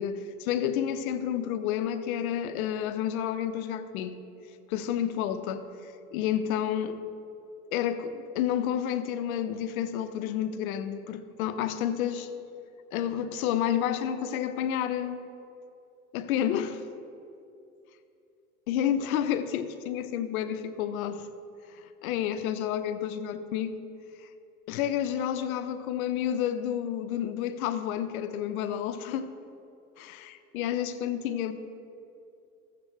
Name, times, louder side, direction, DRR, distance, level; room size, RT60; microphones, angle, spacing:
voice 1, 0.0-4.2 4.7-7.0 7.7-12.3 12.9-15.2 16.1-16.8 18.7-21.3 22.0-23.8 24.7-29.3 30.0-31.5, left 10 dB, 65° left, 11 dB, 0.7 m, -30 dB
14.0 x 7.9 x 3.2 m, 2.6 s
hypercardioid pair, 85°, 46 cm